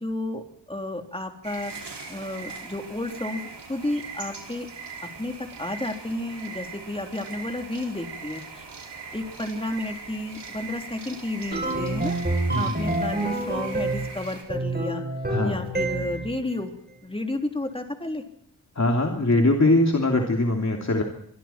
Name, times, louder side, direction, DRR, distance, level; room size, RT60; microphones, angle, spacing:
voice 1, 0.0-3.4 3.7-4.7 5.2-8.7 9.1-12.1 12.5-15.0 15.4-16.7 17.0-18.2, left 1 dB, 15° left, 4 dB, 3.4 m, -32 dB
sound 1, 1.4-14.4, right 4 dB, 80° right, 5.2 m, -40 dB
sound 2, 11.5-14.1 14.5-16.4, right 2 dB, 25° right, 7.5 m, -27 dB
voice 2, 12.5-12.8 15.3-15.7 18.7-21.0, left 2 dB, 40° left, 2 dB, 2.9 m, -22 dB
26.5 x 23.0 x 4.4 m, 0.67 s
wide cardioid pair, 80°, 40 cm